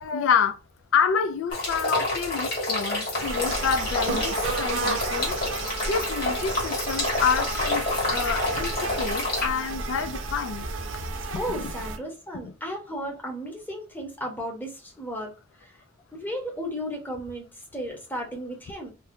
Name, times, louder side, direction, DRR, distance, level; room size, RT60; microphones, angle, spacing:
voice 1, 0.0-0.6 0.9-5.4 5.9-7.8 8.1-10.7 11.5-11.7 12.4-12.5, left 6 dB, 70° left, 0.3 m, -27 dB
sound 1, 1.5-9.5, left 2 dB, 45° left, 1.2 m, -28 dB
sound 2, 3.2-12.0, right 3 dB, 65° right, 0.6 m, -32 dB
voice 2, 11.3-15.7 16.1-18.9, equal, 10° left, 0.8 m, -34 dB
2.6 x 2.2 x 3.4 m
head